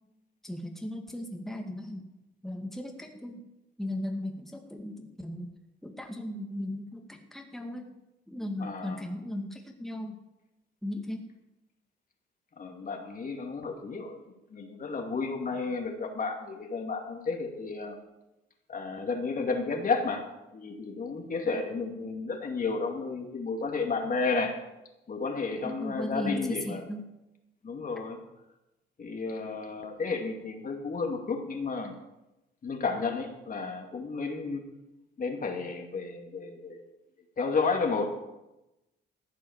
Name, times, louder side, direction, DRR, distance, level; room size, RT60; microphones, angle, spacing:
voice 1, 0.4-2.1 2.4-3.4 3.8-5.5 5.8-8.0 8.3-10.2 10.8-11.3 21.4-21.6 25.6-27.1, left 1 dB, ahead, 2 dB, 2.0 m, -37 dB
voice 2, 8.6-9.0 12.6-14.2 14.5-18.0 18.7-20.3 20.5-24.6 25.1-26.8 27.6-28.2 29.0-32.0 32.6-34.6 35.2-36.9 37.4-38.1, left 4 dB, 45° left, 3 dB, 2.5 m, -32 dB
14.5 x 8.5 x 7.3 m, 0.97 s
cardioid pair, 90°, 20 cm